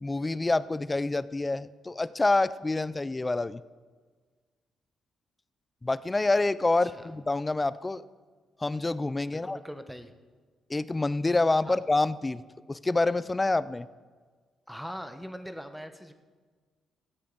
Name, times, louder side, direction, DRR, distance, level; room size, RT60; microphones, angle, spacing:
voice 1, 0.0-3.6 5.8-8.0 8.6-9.6 10.7-12.4 12.7-13.9, left 2 dB, 25° left, 17 dB, 0.4 m, -27 dB
voice 2, 6.8-7.1 9.3-10.1 11.6-11.8 14.7-16.1, equal, ahead, 8 dB, 1.0 m, -41 dB
15.5 x 8.4 x 3.9 m, 1.5 s
supercardioid pair, 60°, 0 cm